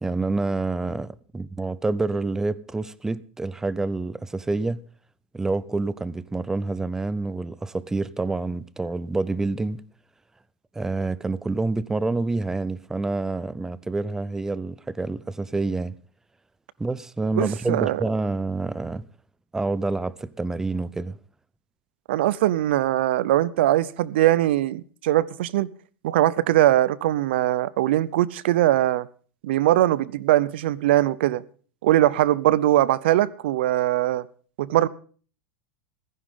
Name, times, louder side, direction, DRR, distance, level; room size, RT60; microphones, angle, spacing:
voice 1, 0.0-4.8 5.3-9.8 10.7-16.0 16.8-19.1 19.5-21.2, right 3 dB, 10° right, 0.6 m, -27 dB
voice 2, 17.4-18.0 22.1-25.7 26.0-29.1 29.4-31.4 31.8-34.2 34.6-34.9, right 14 dB, 75° right, 0.7 m, -21 dB
15.5 x 14.5 x 3.7 m
supercardioid pair, 140°, 6 cm